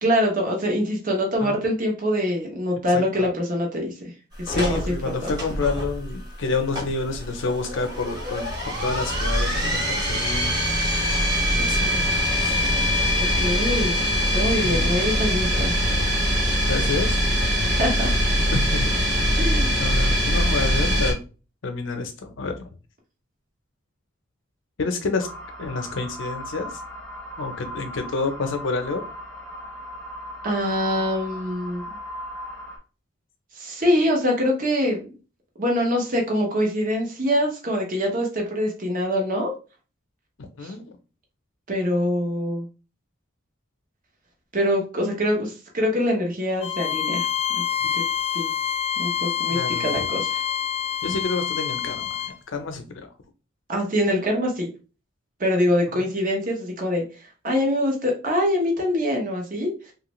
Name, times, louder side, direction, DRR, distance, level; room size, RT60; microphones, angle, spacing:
voice 1, 0.0-4.1 4.5-4.9 5.2-5.3 13.2-14.0 14.3-15.7 17.7-18.1 19.4-19.8 30.4-31.8 33.6-35.1 35.6-39.5 40.6-40.7 41.7-42.7 44.5-47.3 47.9-48.1 48.3-48.5 49.0-50.3 53.7-54.7 55.4-59.9, equal, 40° right, 0.8 m, -24 dB
voice 2, 2.9-3.3 4.5-10.6 11.5-12.1 12.4-12.6 14.6-14.9 15.5-15.6 15.9-16.3 16.7-17.2 18.5-18.9 19.8-21.2 21.6-22.7 24.8-25.3 25.6-26.8 27.4-29.0 40.6-40.8 49.5-50.1 51.0-53.1 55.9-56.0, left 3 dB, 65° left, 0.6 m, -29 dB
sound 1, 4.5-21.1, equal, 20° right, 1.1 m, -23 dB
sound 2, 25.2-32.8, equal, 5° left, 0.7 m, -37 dB
Bowed string instrument, 46.6-52.4, left 9 dB, 30° left, 0.3 m, -26 dB
3.0 x 2.4 x 3.0 m
head